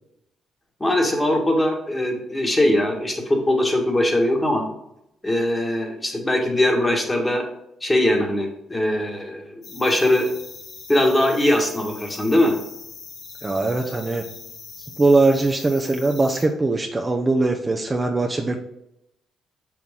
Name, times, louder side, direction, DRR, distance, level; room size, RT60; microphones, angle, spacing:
voice 1, 0.8-4.6 5.2-7.4 7.8-10.3 10.9-12.5, left 1 dB, 15° left, 1 dB, 1.7 m, -21 dB
sound 1, 9.6-16.5, left 5 dB, 65° left, 1.3 m, -41 dB
voice 2, 13.4-14.2 15.0-18.6, right 3 dB, 25° right, 1 dB, 0.7 m, -21 dB
6.1 x 5.9 x 3.7 m, 0.81 s
cardioid pair, 90°, 0 cm